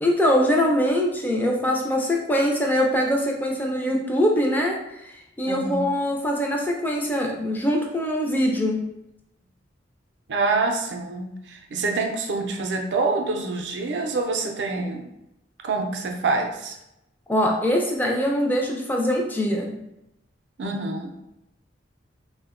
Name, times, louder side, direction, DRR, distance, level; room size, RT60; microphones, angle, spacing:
voice 1, 0.0-4.8 5.0-8.8 17.3-19.8, equal, 10° left, 0 dB, 0.3 m, -23 dB
voice 2, 5.5-5.9 10.3-15.1 15.6-16.8 20.6-21.1, right 3 dB, 65° right, 3 dB, 0.4 m, -26 dB
3.3 x 2.1 x 2.4 m, 0.87 s
head